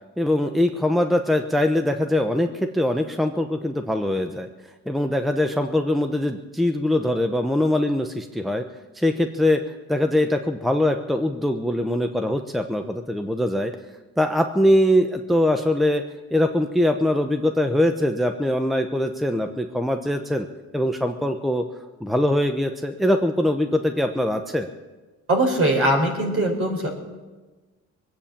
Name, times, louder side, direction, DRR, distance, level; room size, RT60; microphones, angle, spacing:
voice 1, 0.2-4.5 4.9-8.6 8.9-9.6 9.9-13.7 14.2-16.0 16.3-20.5 20.7-21.6 22.0-24.7, left 1 dB, ahead, 6 dB, 0.8 m, -22 dB
voice 2, 25.3-26.9, right 1 dB, 50° right, 2 dB, 4.7 m, -21 dB
21.5 x 8.6 x 7.4 m, 1.2 s
cardioid pair, 90°, 30 cm